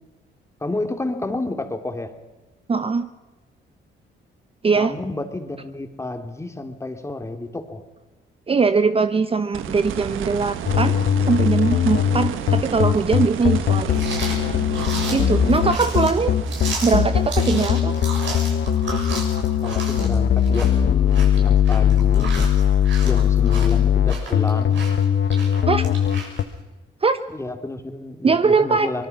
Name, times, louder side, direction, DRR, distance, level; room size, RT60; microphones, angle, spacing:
voice 1, 0.6-2.1 4.7-7.8 16.2-16.3 19.6-22.3 23.0-24.9 27.3-29.1, left 2 dB, 15° left, 6 dB, 2.6 m, -30 dB
voice 2, 2.7-3.1 4.6-4.9 8.5-10.9 11.3-14.0 15.1-16.3 16.8-17.9 25.7-25.9 27.0-27.2 28.2-29.1, right 4 dB, 30° right, 11 dB, 0.8 m, -21 dB
sound 1, 9.5-20.4 22.7-22.8, right 9 dB, 85° right, 1.3 m, -33 dB
sound 2, 10.6-26.4, left 9 dB, 60° left, 1.1 m, -20 dB
sound 3, 13.9-26.4, right 4 dB, 70° right, 6.8 m, -34 dB
24.5 x 21.0 x 5.9 m, 1.2 s
cardioid pair, 90°, 20 cm